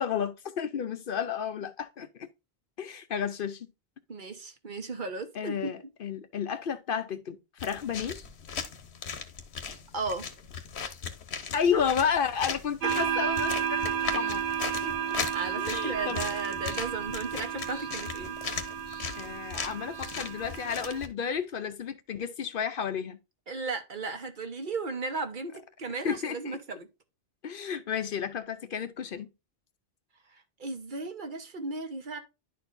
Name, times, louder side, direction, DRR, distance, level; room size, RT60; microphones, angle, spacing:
voice 1, 0.0-2.3 2.8-3.7 5.3-8.2 11.5-14.4 14.8-14.9 15.6-16.2 19.1-23.2 26.0-26.6 27.4-29.3, left 7 dB, 60° left, 0.7 m, -32 dB
voice 2, 4.1-5.7 9.9-10.2 15.3-18.4 23.5-26.9 30.3-32.2, right 3 dB, 50° right, 1.1 m, -35 dB
sound 1, 7.6-21.1, left 6 dB, 90° left, 1.2 m, -38 dB
sound 2, 12.8-21.0, right 8 dB, 85° right, 1.1 m, -32 dB
11.0 x 4.4 x 2.5 m
omnidirectional pair, 1.1 m